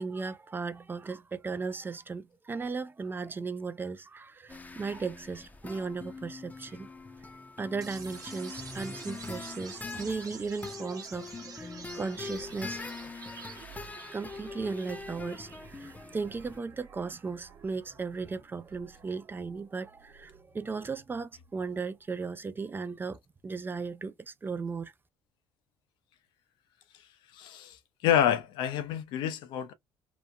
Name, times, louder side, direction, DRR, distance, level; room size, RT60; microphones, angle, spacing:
voice 1, 0.0-6.9 7.6-12.8 14.1-24.9, right 4 dB, 25° right, 0.4 m, -36 dB
sound 1, 4.5-16.6, left 4 dB, 20° left, 0.7 m, -43 dB
sound 2, 7.8-21.8, right 5 dB, 45° right, 0.9 m, -49 dB
voice 2, 27.3-29.7, left 10 dB, 70° left, 0.5 m, -28 dB
3.0 x 2.1 x 2.4 m
hypercardioid pair, 60°, 8 cm